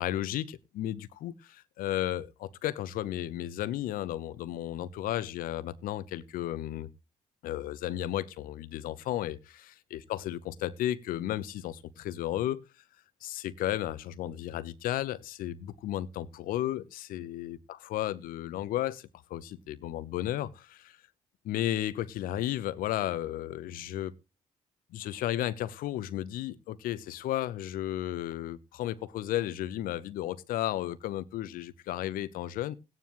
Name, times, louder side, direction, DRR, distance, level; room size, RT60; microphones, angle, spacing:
voice 1, 0.0-6.9 7.4-12.6 13.2-17.6 17.9-21.0 21.4-24.1 24.9-32.7, left 13 dB, 75° left, 0.8 m, -34 dB
17.0 x 9.6 x 3.0 m
hypercardioid pair, 45°, 15 cm